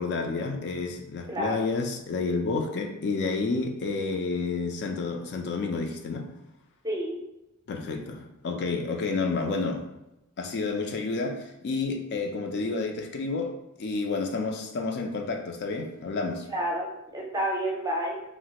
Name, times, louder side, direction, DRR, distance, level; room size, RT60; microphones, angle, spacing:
voice 1, 0.0-6.3 7.7-9.9 10.4-16.5, left 3 dB, 50° left, 3 dB, 0.3 m, -30 dB
voice 2, 1.3-1.7 6.8-7.2 16.5-16.9 17.1-18.2, right 1 dB, 15° right, -1 dB, 0.6 m, -29 dB
2.9 x 2.4 x 2.8 m, 0.91 s
head